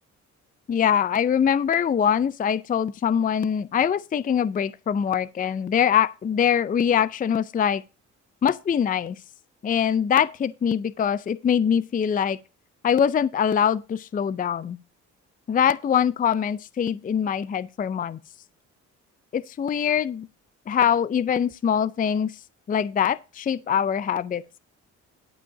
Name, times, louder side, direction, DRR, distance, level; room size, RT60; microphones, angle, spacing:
voice 1, 0.7-7.8 8.4-9.2 9.6-12.4 12.8-14.8 15.5-18.2 19.3-20.3 20.7-22.3 22.7-24.4, left 8 dB, 30° left, 0.4 m, -23 dB
11.5 x 5.3 x 5.7 m
cardioid pair, 90°, 30 cm